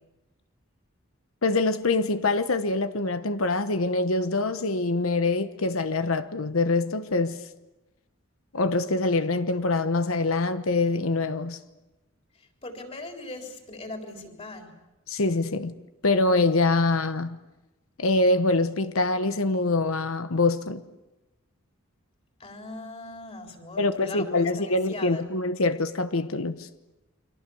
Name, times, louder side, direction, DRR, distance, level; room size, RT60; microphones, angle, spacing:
voice 1, 1.4-7.4 8.5-11.6 15.1-15.7 16.0-17.4 18.0-20.8 23.8-26.7, left 2 dB, 80° left, 1.1 m, -24 dB
voice 2, 12.6-14.7 22.4-25.3, left 2 dB, 30° left, 4.0 m, -40 dB
29.5 x 23.5 x 7.1 m
head